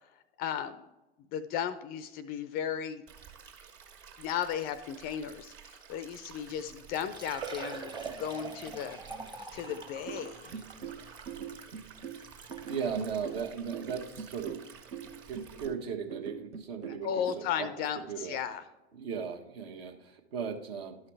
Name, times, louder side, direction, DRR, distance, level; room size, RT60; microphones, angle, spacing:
voice 1, 0.4-0.8 1.3-3.0 4.2-5.5 5.9-9.0 9.5-10.6 16.9-18.6, left 9 dB, 30° left, 12 dB, 0.4 m, -35 dB
Stream, 3.1-15.7, right 7 dB, 40° right, 1.8 m, -52 dB
Liquid, 6.9-12.8 13.5-13.6 14.1-14.2 15.8-15.9 16.1-16.2, right 4 dB, 15° right, 0.9 m, -44 dB
sound 1, 9.7-17.4, right 8 dB, 85° right, 0.7 m, -43 dB
voice 2, 12.7-14.6 15.3-17.7 18.0-18.4 18.9-21.0, right 6 dB, 60° right, 4 dB, 1.4 m, -37 dB
11.5 x 5.6 x 3.3 m, 1.0 s
hypercardioid pair, 100°, 34 cm